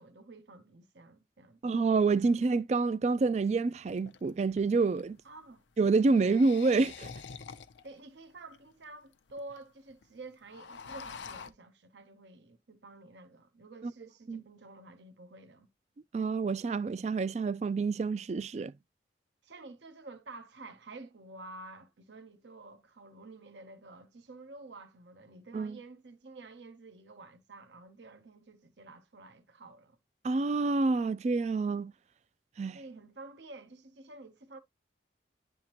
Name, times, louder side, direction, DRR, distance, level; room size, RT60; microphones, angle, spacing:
voice 1, 0.0-1.6 5.2-5.6 7.8-15.7 19.4-30.0 32.7-34.6, right 2 dB, 75° right, 0.8 m, -50 dB
voice 2, 1.6-5.2 5.8-7.1 13.8-13.9 14.3-14.4 16.1-18.7 25.5-25.8 30.2-31.9 32.6-32.8, right 4 dB, 40° right, 0.3 m, -28 dB
sound 1, 3.2-3.3 3.9-5.1 5.9-8.0 8.5-8.6 8.8-8.9 9.1-9.6 9.9-10.0 10.3-11.5, left 5 dB, 85° left, 0.6 m, -46 dB
10.5 x 3.5 x 2.9 m
head